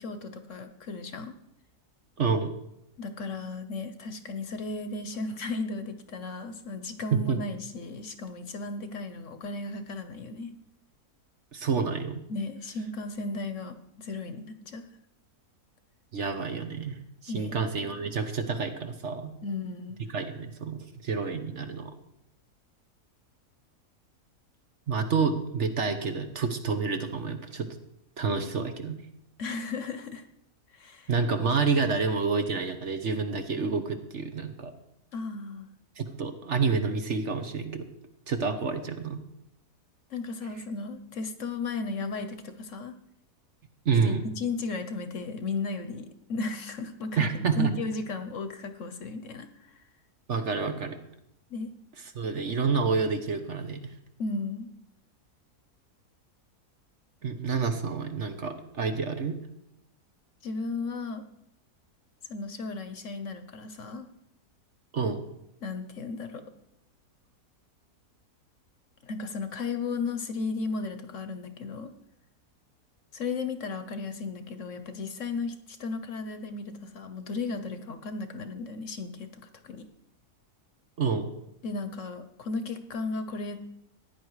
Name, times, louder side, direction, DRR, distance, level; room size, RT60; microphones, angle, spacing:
voice 1, 0.0-1.3 3.0-10.5 12.3-14.8 17.3-17.6 19.4-20.0 29.4-30.2 30.7-31.1 35.1-35.7 40.1-42.9 44.0-49.7 51.5-51.7 54.2-54.7 60.4-61.2 62.3-64.1 65.6-66.4 69.1-71.9 73.1-79.3 79.6-79.8 81.6-83.6, left 3 dB, 55° left, 9 dB, 1.2 m, -35 dB
voice 2, 2.2-2.5 7.3-7.4 11.5-12.2 16.1-17.0 17.2-19.3 20.1-21.9 24.9-27.7 28.2-29.0 31.1-34.7 36.0-37.9 38.3-39.2 43.8-44.2 47.2-47.7 50.3-51.0 52.1-53.8 57.2-59.4 64.9-65.2 81.0-81.3, right 5 dB, 50° right, 7 dB, 1.3 m, -28 dB
15.5 x 9.9 x 4.8 m, 0.81 s
omnidirectional pair, 1.7 m